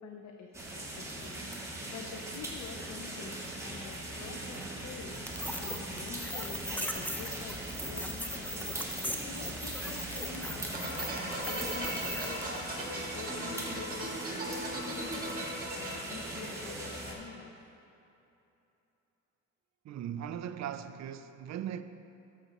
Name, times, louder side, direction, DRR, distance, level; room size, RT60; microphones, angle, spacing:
voice 1, 0.0-5.1 5.6-10.7 10.9-15.4 15.7-17.5, left 5 dB, 65° left, 0.7 m, -47 dB
sound 1, 0.5-17.1, right 1 dB, 10° right, 1.5 m, -40 dB
sound 2, 5.3-12.5, left 1 dB, 5° left, 0.6 m, -39 dB
sound 3, 10.7-17.2, right 1 dB, 30° right, 1.8 m, -39 dB
voice 2, 19.8-21.8, right 9 dB, 65° right, 0.5 m, -38 dB
12.0 x 7.2 x 3.0 m
cardioid pair, 90°, 30 cm